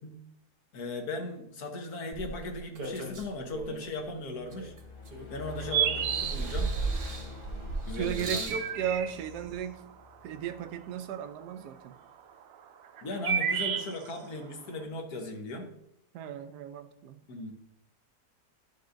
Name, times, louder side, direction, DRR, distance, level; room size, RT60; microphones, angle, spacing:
voice 1, 0.7-4.7 5.3-6.7 7.9-8.5 13.0-15.7 17.3-17.5, left 2 dB, 70° left, 4 dB, 1.5 m, -37 dB
sound 1, 2.1-3.9 4.5-5.6 6.0-8.6 9.5-9.6, right 3 dB, 40° right, 1.0 m, -35 dB
sound 2, 4.4-10.9, left 3 dB, 25° left, 0.8 m, -46 dB
sound 3, 5.5-6.9 8.2-9.5 10.7-11.4 12.4-14.4, right 8 dB, 70° right, 0.9 m, -30 dB
voice 2, 8.0-9.8 10.2-12.0 16.1-17.2, right 8 dB, 90° right, 9 dB, 1.2 m, -35 dB
11.0 x 5.3 x 2.5 m, 0.79 s
omnidirectional pair, 1.7 m